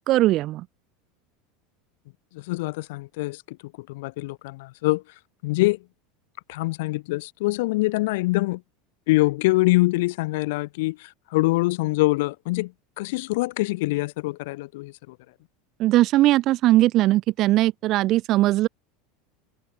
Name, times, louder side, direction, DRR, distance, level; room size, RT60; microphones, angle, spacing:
voice 1, 0.1-0.7 15.8-18.7, right 16 dB, 40° right, 1.0 m, -19 dB
voice 2, 2.3-5.0 5.4-5.8 6.5-8.6 9.1-12.7 13.0-15.2, left 21 dB, 70° left, 0.6 m, -24 dB
supercardioid pair, 165°, 0 cm